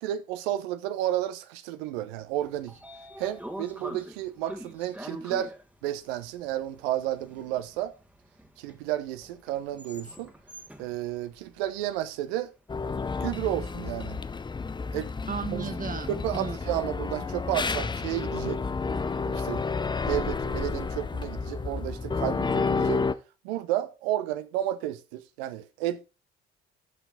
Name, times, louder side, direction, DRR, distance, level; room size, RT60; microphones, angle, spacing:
voice 1, 0.0-2.8 3.2-5.5 5.8-7.9 8.6-10.3 10.8-12.5 13.2-14.2 14.9-15.1 15.5-15.6 16.1-18.6 19.2-19.6 20.1-23.0 23.4-26.1, right 13 dB, 65° right, 0.9 m, -32 dB
Train / Sliding door, 2.2-12.4, right 1 dB, 5° right, 1.6 m, -45 dB
sound 1, 12.7-23.1, left 4 dB, 15° left, 0.6 m, -30 dB
voice 2, 15.3-16.6, right 6 dB, 25° right, 1.1 m, -35 dB
12.5 x 6.0 x 3.9 m
figure-of-eight pair, 50°, 33 cm